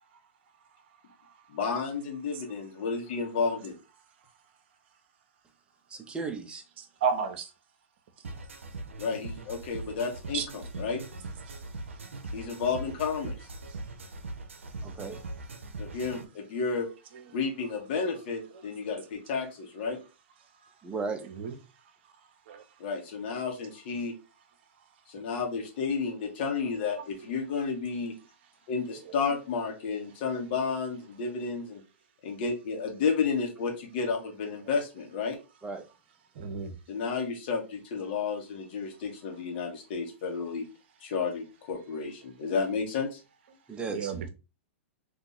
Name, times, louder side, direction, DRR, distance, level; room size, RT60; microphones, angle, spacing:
voice 1, 1.5-3.7 9.0-11.0 12.3-13.3 15.8-16.9 17.3-20.0 22.8-24.1 25.1-28.1 28.7-31.8 32.2-35.4 36.9-40.6 41.0-43.2, left 5 dB, 55° left, 1.2 m, -31 dB
voice 2, 5.9-6.6 14.8-15.2 20.8-21.2 35.6-35.9 43.7-44.1, right 4 dB, 15° right, 0.7 m, -35 dB
voice 3, 7.0-7.5 10.3-10.5 21.4-21.5 22.5-22.6 36.4-36.7 43.9-44.3, right 6 dB, 55° right, 0.7 m, -31 dB
sound 1, 8.2-16.2, right 2 dB, 85° right, 0.6 m, -41 dB
2.7 x 2.6 x 3.8 m
hypercardioid pair, 115°, 7 cm